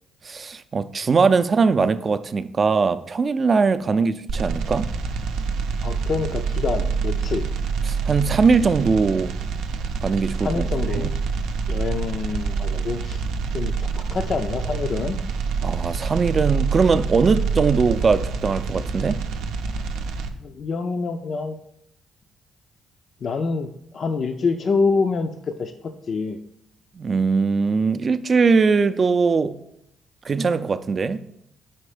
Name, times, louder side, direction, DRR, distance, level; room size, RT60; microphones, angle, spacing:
voice 1, 0.2-4.9 7.8-9.3 10.0-11.1 15.6-19.2 27.0-29.6 30.2-31.2, right 4 dB, 40° right, 0.4 m, -21 dB
sound 1, 4.3-20.3, right 5 dB, 85° right, 0.5 m, -26 dB
voice 2, 5.8-7.5 10.4-11.2 11.7-13.2 13.5-15.2 20.4-21.6 23.2-23.7 23.9-26.4, left 4 dB, 50° left, 0.4 m, -26 dB
5.4 x 4.3 x 5.0 m
cardioid pair, 90°, 0 cm